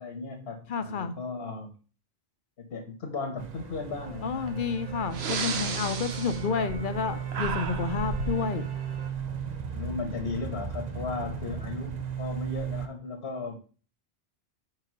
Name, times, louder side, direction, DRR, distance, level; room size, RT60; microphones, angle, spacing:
voice 1, 0.0-1.7 2.6-4.6 9.7-13.6, left 4 dB, 80° left, 3 dB, 1.4 m, -36 dB
voice 2, 0.7-1.1 4.2-8.7, left 6 dB, 55° left, 10 dB, 0.7 m, -30 dB
sound 1, 3.4-12.9, right 8 dB, 45° right, 0.8 m, -36 dB
sound 2, 3.6-9.1, right 1 dB, 10° right, 1.1 m, -48 dB
Breathing, 4.5-4.6 5.1-7.0 7.3-8.4, right 4 dB, 75° right, 1.1 m, -33 dB
4.8 x 4.8 x 6.0 m, 0.39 s
omnidirectional pair, 1.1 m